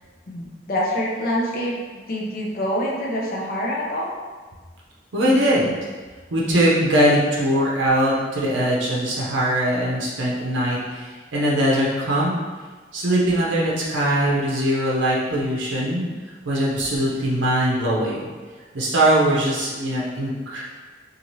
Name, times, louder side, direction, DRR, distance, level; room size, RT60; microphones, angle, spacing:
voice 1, 0.3-1.8 2.1-4.1, equal, 50° left, -3 dB, 0.5 m, -25 dB
voice 2, 5.1-5.8 6.3-12.3 12.9-16.0 16.4-18.2 18.7-20.6, right 1 dB, 85° right, -5 dB, 0.6 m, -21 dB
2.7 x 2.4 x 3.0 m, 1.4 s
head